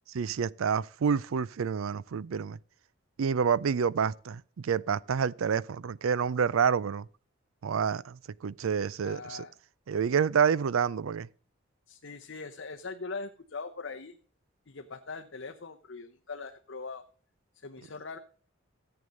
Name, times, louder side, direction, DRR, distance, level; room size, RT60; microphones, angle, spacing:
voice 1, 0.1-2.6 3.2-7.1 7.6-9.5 9.9-11.3, right 6 dB, 85° right, 0.4 m, -28 dB
voice 2, 9.0-9.5 11.9-14.2 14.7-17.0 17.5-18.2, left 4 dB, 65° left, 0.8 m, -41 dB
14.0 x 8.0 x 5.1 m
head